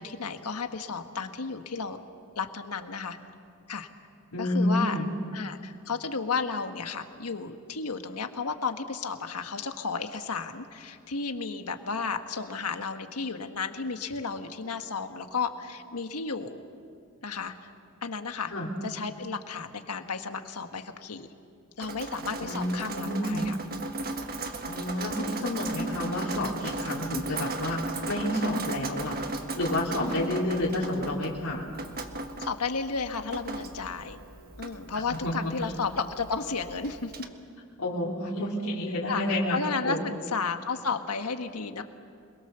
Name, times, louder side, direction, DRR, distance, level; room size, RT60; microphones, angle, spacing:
voice 1, 0.0-2.0 2.4-3.2 3.7-3.9 4.4-5.0 5.3-16.6 17.2-17.7 18.0-18.5 18.8-21.3 21.8-23.6 30.0-30.4 32.4-34.2 34.6-37.1 39.1-41.8, left 4 dB, 90° left, 7 dB, 1.5 m, -33 dB
voice 2, 4.3-5.1 18.5-18.7 22.4-23.5 24.6-27.8 28.1-29.2 29.6-31.7 34.9-35.7 37.8-39.6 39.8-40.0, left 1 dB, 75° left, -6 dB, 3.5 m, -29 dB
Drip, 21.8-37.3, right 2 dB, 45° right, 1.4 m, -37 dB
27.5 x 21.5 x 6.9 m, 2.3 s
head